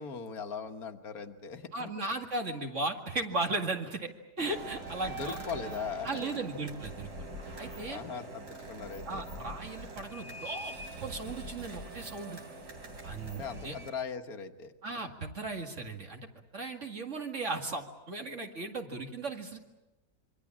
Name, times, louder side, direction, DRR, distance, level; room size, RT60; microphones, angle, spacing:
voice 1, 0.0-1.9 5.1-6.3 7.9-9.2 13.3-14.7, left 6 dB, 65° left, 7 dB, 1.7 m, -39 dB
voice 2, 1.7-4.1 4.4-5.4 6.0-7.3 7.6-8.0 9.1-10.8 11.0-12.4 13.0-13.8 14.8-19.6, right 3 dB, 45° right, 3 dB, 2.4 m, -36 dB
sound 1, 4.4-13.9, right 2 dB, 75° right, 4.1 m, -43 dB
26.5 x 24.0 x 7.4 m, 1.0 s
omnidirectional pair, 1.8 m